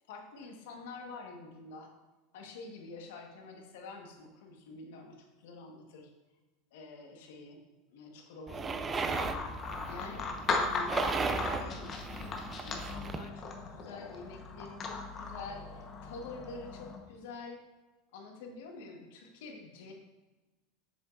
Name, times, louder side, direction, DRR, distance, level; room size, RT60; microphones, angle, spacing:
voice 1, 0.1-1.9 2.3-6.1 6.7-7.6 7.9-9.5 9.9-10.3 10.6-17.6 18.1-19.9, left 3 dB, 80° left, 2 dB, 1.3 m, -47 dB
sound 1, 8.5-13.3, right 4 dB, 20° right, 0.5 m, -36 dB
sound 2, 9.1-17.0, left 4 dB, 35° left, 1.0 m, -38 dB
7.3 x 7.0 x 2.5 m, 1.1 s
supercardioid pair, 120°, 0 cm